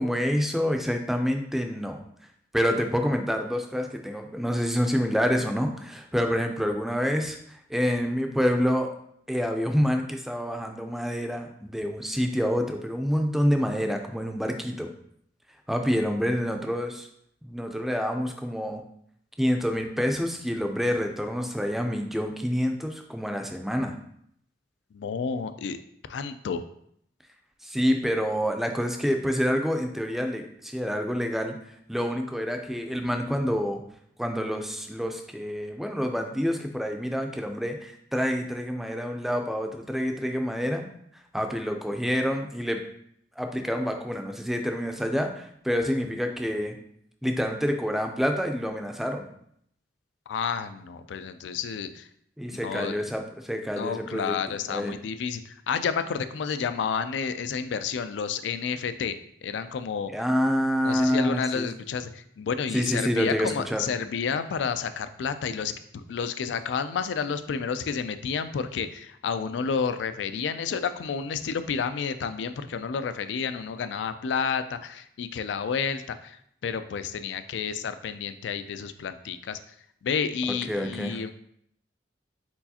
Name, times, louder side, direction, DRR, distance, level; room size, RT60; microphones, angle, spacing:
voice 1, 0.0-2.0 2.5-8.9 9.3-14.9 15.7-17.1 17.4-18.8 19.4-24.0 27.6-31.6 31.9-33.8 34.2-40.9 41.3-42.8 43.4-46.8 47.2-49.3 52.4-54.9 60.1-61.7 62.7-63.8 80.7-81.2, equal, ahead, 4 dB, 0.4 m, -27 dB
voice 2, 24.9-25.8 26.1-26.6 50.3-52.1 52.5-53.0 53.8-59.2 59.4-60.1 60.8-79.6 80.0-81.3, left 6 dB, 75° left, 11 dB, 0.3 m, -30 dB
4.5 x 4.0 x 2.8 m, 0.70 s
head